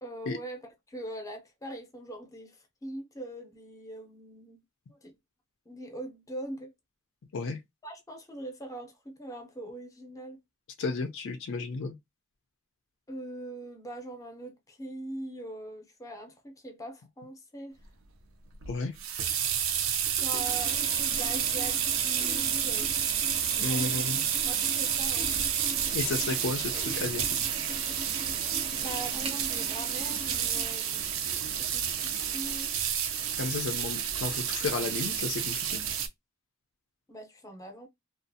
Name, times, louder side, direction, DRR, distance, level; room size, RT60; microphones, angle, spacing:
voice 1, 0.0-4.6 4.9-5.1 5.7-6.7 7.8-10.4 13.1-17.8 20.2-22.9 23.7-24.0 24.4-25.3 28.8-31.0 31.6-32.7 37.1-37.9, right 1 dB, 15° left, 0.6 m, -42 dB
voice 2, 10.8-11.9 18.7-18.9 23.6-24.2 25.9-27.4 33.4-35.8, left 4 dB, 65° left, 0.5 m, -33 dB
sound 1, 18.6-36.1, right 9 dB, 70° right, 0.5 m, -30 dB
sound 2, 20.3-32.6, right 2 dB, 30° right, 0.6 m, -41 dB
2.5 x 2.4 x 2.6 m
head